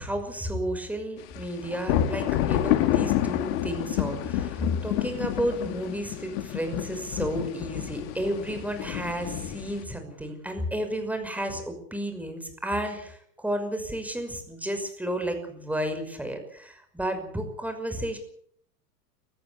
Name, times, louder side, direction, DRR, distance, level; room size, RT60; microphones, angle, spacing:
voice 1, 0.0-18.2, equal, 5° right, 6 dB, 5.8 m, -32 dB
sound 1, 1.3-9.8, left 13 dB, 55° left, 2.6 m, -29 dB
24.0 x 15.0 x 8.4 m, 0.65 s
hypercardioid pair, 105°, 47 cm